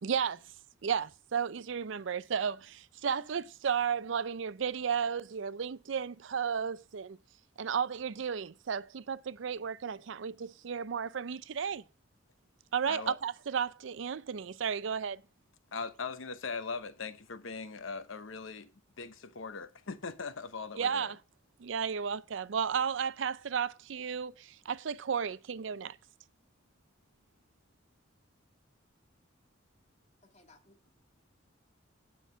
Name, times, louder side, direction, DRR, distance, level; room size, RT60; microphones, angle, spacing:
voice 1, 0.0-0.4 0.8-7.2 7.6-11.8 12.7-15.2 20.8-21.2 21.6-26.0, right 7 dB, 70° right, 0.5 m, -33 dB
voice 2, 12.8-13.1 15.7-18.7 19.0-21.1, left 4 dB, 85° left, 0.9 m, -40 dB
voice 3, 30.2-30.9, left 2 dB, 35° left, 1.9 m, -62 dB
9.3 x 5.8 x 5.5 m
head